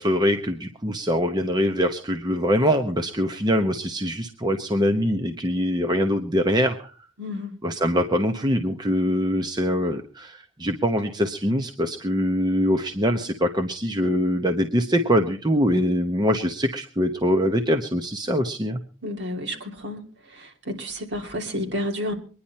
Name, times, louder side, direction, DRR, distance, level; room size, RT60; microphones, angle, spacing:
voice 1, 0.0-6.9 7.6-18.8, equal, 20° right, 5 dB, 1.0 m, -23 dB
voice 2, 7.2-7.5 19.0-20.0 20.4-22.1, left 1 dB, 60° right, 2 dB, 3.0 m, -30 dB
23.5 x 10.5 x 4.3 m, 0.39 s
head